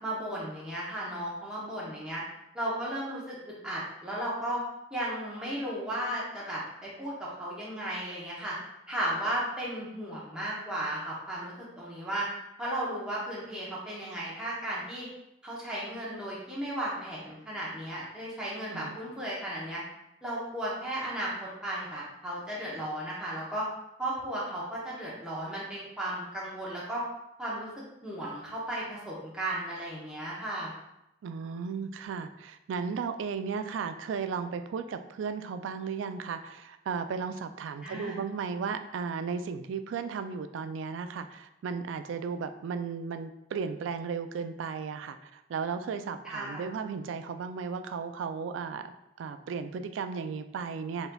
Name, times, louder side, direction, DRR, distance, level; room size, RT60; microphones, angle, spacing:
voice 1, 0.0-2.2 2.5-3.4 3.6-4.6 4.9-8.6 8.9-12.3 12.6-15.1 15.4-19.8 20.2-23.7 24.0-27.0 27.4-27.7 28.0-30.7 37.8-38.2 46.2-46.6, right 1 dB, 5° right, -7 dB, 0.8 m, -35 dB
voice 2, 31.2-48.8 49.2-51.1, right 5 dB, 80° right, 9 dB, 0.3 m, -35 dB
4.0 x 3.9 x 2.3 m, 0.86 s
head